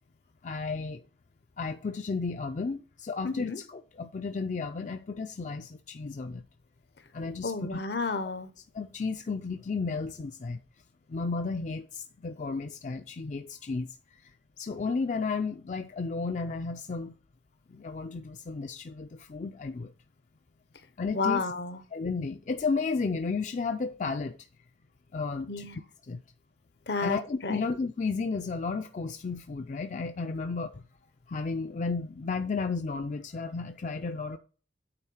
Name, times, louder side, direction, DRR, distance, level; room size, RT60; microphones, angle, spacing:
voice 1, 0.4-1.0 1.6-6.4 7.1-7.8 8.7-10.6 11.1-17.1 17.7-19.9 21.0-21.5 21.9-24.4 25.1-26.2 27.0-30.8 31.3-34.4, left 4 dB, 45° left, 0.4 m, -33 dB
voice 2, 3.2-3.6 7.4-8.5 21.1-21.8 25.5-25.7 26.9-27.6, left 4 dB, 70° left, 0.9 m, -31 dB
8.9 x 3.7 x 6.3 m
head